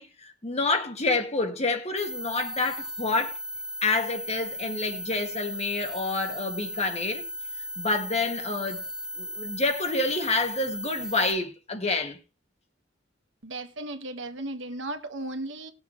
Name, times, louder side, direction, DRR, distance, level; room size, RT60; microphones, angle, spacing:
voice 1, 0.0-3.4 3.8-7.3 7.8-8.8 9.2-12.2, left 3 dB, 35° left, 1.7 m, -28 dB
sound 1, 2.0-11.3, equal, ahead, 0.7 m, -36 dB
voice 2, 13.4-15.7, right 2 dB, 75° right, 1.6 m, -35 dB
19.5 x 7.1 x 3.1 m
head